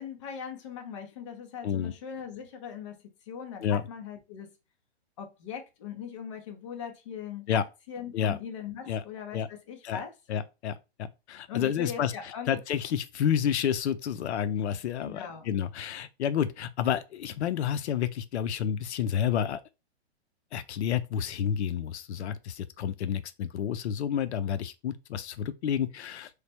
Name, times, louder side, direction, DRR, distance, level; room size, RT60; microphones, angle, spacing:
voice 1, 0.0-3.0 3.3-4.5 5.2-7.5 7.9-10.1 11.5-12.6 15.0-15.5, left 7 dB, 30° left, 0.6 m, -40 dB
voice 2, 10.3-19.6 20.5-26.3, left 9 dB, 85° left, 0.5 m, -30 dB
3.2 x 2.1 x 4.2 m
hypercardioid pair, 170°, 33 cm